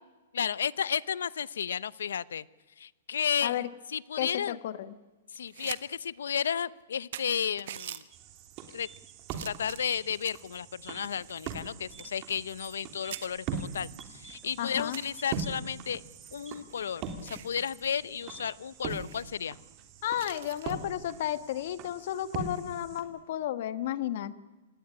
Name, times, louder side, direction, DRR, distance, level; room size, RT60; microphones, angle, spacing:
voice 1, 0.3-2.5 2.8-3.6 3.9-4.6 5.3-8.0 8.7-8.9 9.4-16.0 16.3-19.6, left 8 dB, 90° left, 20 dB, 0.8 m, -33 dB
voice 2, 4.2-4.9 14.6-15.0 20.0-24.4, left 12 dB, 55° left, 13 dB, 1.5 m, -33 dB
sound 1, 5.3-5.8 6.2-6.3 6.8-6.9 7.1-8.0 8.7-9.0 9.3-10.5 11.0-12.9 13.1-13.3 13.9-14.0 14.3-14.4 14.9-15.4 16.3-17.6 17.9-18.1 18.4-18.5 18.9-19.3 20.2-20.7 22.5-22.7, right 11 dB, 65° right, 1.4 m, -45 dB
sound 2, 7.4-18.8, right 4 dB, 10° right, 1.1 m, -54 dB
sound 3, 8.1-23.0, right 6 dB, 35° right, 3.2 m, -42 dB
26.0 x 18.5 x 10.0 m, 1.3 s
hypercardioid pair, 150°, 0 cm